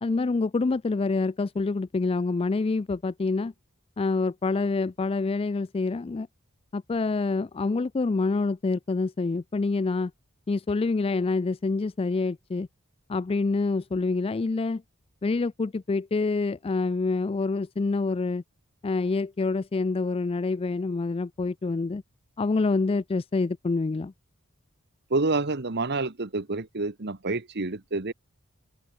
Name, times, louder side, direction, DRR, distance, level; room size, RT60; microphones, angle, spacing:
voice 1, 0.0-3.5 4.0-6.3 6.7-10.1 10.5-12.7 13.1-14.8 15.2-18.4 18.8-22.0 22.4-24.1, left 3 dB, 25° left, 0.4 m, -26 dB
voice 2, 25.1-28.1, right 3 dB, 55° right, 1.3 m, -28 dB
open air
head